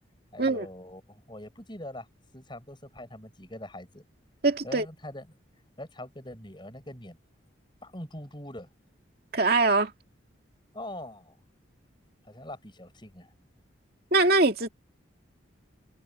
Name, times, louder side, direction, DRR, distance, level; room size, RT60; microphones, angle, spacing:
voice 1, 0.3-2.1 2.3-4.0 4.6-5.3 5.8-7.2 7.8-8.7 10.7-11.4 12.2-13.3, left 1 dB, 25° left, 6.6 m, -42 dB
voice 2, 4.4-4.8 9.3-9.9 14.1-14.7, right 3 dB, 50° right, 2.4 m, -22 dB
head